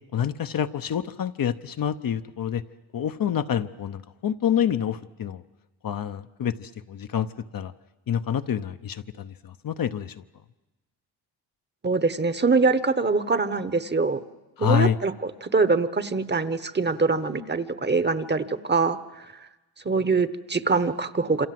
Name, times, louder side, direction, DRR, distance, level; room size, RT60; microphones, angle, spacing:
voice 1, 0.1-2.6 2.9-5.4 5.8-7.7 8.1-10.2 14.6-15.0, left 9 dB, 50° left, 9 dB, 0.9 m, -27 dB
voice 2, 11.8-14.2 14.6-19.3 19.8-21.5, right 4 dB, 25° right, 13 dB, 1.1 m, -24 dB
27.5 x 26.5 x 7.7 m, 1.1 s
cardioid pair, 90°, 44 cm